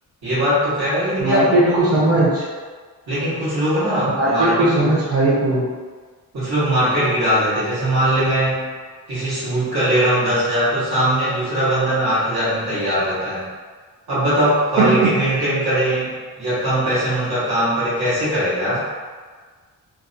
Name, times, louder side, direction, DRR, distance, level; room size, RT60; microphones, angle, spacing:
voice 1, 0.2-1.8 3.1-5.0 6.3-8.7 9.1-13.5 14.1-18.9, right 1 dB, 70° right, -10 dB, 1.3 m, -20 dB
voice 2, 1.2-2.5 4.1-5.7 14.8-15.3, right 2 dB, 40° right, -6 dB, 0.9 m, -18 dB
2.6 x 2.1 x 2.5 m, 1.5 s
cardioid pair, 60°, 39 cm